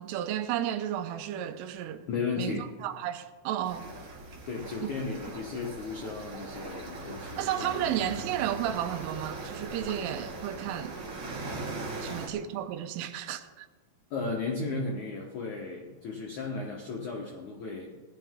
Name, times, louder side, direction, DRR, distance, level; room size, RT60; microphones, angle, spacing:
voice 1, 0.0-2.1 2.4-3.9 4.8-4.9 7.4-10.9 12.0-13.7, right 11 dB, 85° right, 3.3 m, -33 dB
voice 2, 2.1-2.7 4.4-8.1 11.9-12.3 14.1-17.9, left 4 dB, 85° left, 1.7 m, -35 dB
sound 1, 3.6-12.3, right 2 dB, 45° right, 2.9 m, -40 dB
18.0 x 12.5 x 3.7 m
omnidirectional pair, 5.7 m